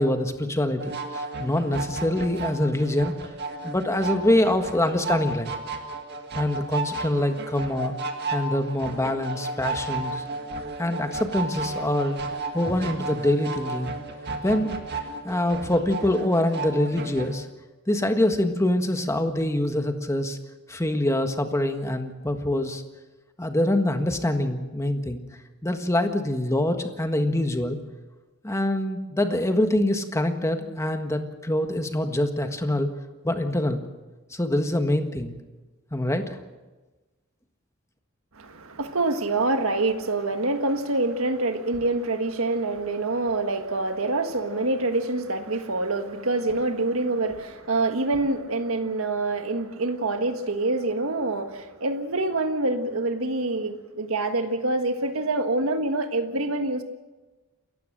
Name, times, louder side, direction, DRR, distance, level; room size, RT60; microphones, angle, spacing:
voice 1, 0.0-3.1 3.6-5.5 6.3-8.0 8.3-10.2 10.8-12.2 12.5-13.9 14.4-14.8 15.2-17.5 17.9-20.4 20.7-22.8 23.4-25.2 25.6-27.8 28.4-32.9 33.2-33.8 34.3-35.4 35.9-36.4, left 1 dB, 15° left, 6 dB, 1.6 m, -25 dB
sound 1, 0.8-17.4, right 3 dB, 55° right, 2.0 m, -33 dB
voice 2, 38.4-56.8, right 2 dB, 90° right, 7 dB, 1.6 m, -26 dB
28.0 x 15.0 x 6.6 m, 1.2 s
head